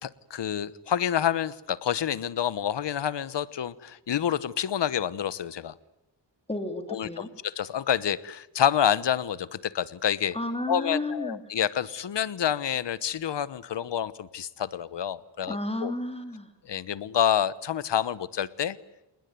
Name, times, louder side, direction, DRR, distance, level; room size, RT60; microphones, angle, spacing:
voice 1, 0.0-5.7 6.9-10.4 10.7-15.9 16.7-18.8, left 9 dB, 80° left, 18 dB, 1.1 m, -28 dB
voice 2, 6.5-7.3 10.3-11.4 15.5-16.5, left 1 dB, 15° left, 6 dB, 2.3 m, -32 dB
28.0 x 20.0 x 9.5 m, 0.92 s
wide cardioid pair, 140°, 42 cm